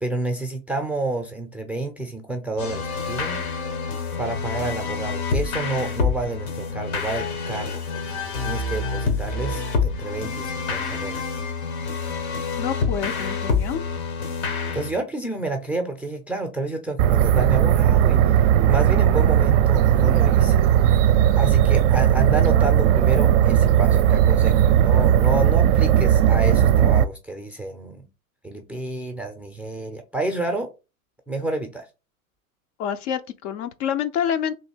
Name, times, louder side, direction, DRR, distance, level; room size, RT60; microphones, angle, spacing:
voice 1, 0.0-3.4 4.2-11.4 14.4-18.2 18.7-20.6 21.4-28.1 28.4-30.7 31.3-31.9, right 2 dB, 5° right, 0.5 m, -29 dB
sound 1, 2.6-14.9, left 4 dB, 75° left, 1.2 m, -27 dB
voice 2, 12.6-13.8 32.8-34.5, left 8 dB, 50° left, 0.5 m, -27 dB
sound 2, 17.0-27.0, right 10 dB, 55° right, 0.5 m, -17 dB
3.2 x 2.7 x 4.3 m
hypercardioid pair, 95°, 43 cm